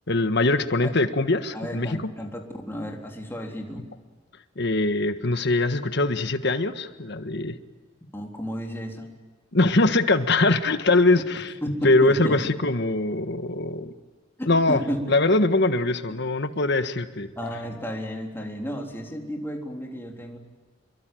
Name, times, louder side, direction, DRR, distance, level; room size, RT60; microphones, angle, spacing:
voice 1, 0.1-2.0 4.6-7.6 9.5-11.5 11.8-13.9 14.5-14.8 15.1-17.3, left 2 dB, 60° left, 10 dB, 1.5 m, -22 dB
voice 2, 1.5-2.4 2.7-3.8 8.1-9.1 11.6-11.7 12.0-12.4 14.4-15.0 17.4-20.4, equal, 10° left, 1 dB, 3.7 m, -33 dB
27.0 x 23.5 x 9.3 m, 1.3 s
head